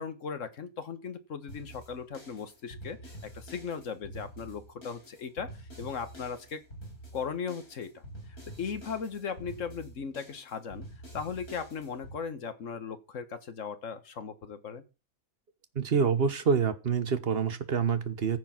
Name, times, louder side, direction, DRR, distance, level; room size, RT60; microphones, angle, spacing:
voice 1, 0.0-5.5 5.8-6.6 7.1-8.0 8.6-10.9 11.1-14.8, left 6 dB, 60° left, 1.7 m, -37 dB
sound 1, 1.5-12.2, right 1 dB, 80° left, 7.3 m, -47 dB
voice 2, 15.7-18.4, right 6 dB, 45° right, 1.4 m, -27 dB
15.0 x 7.2 x 5.9 m
omnidirectional pair, 1.5 m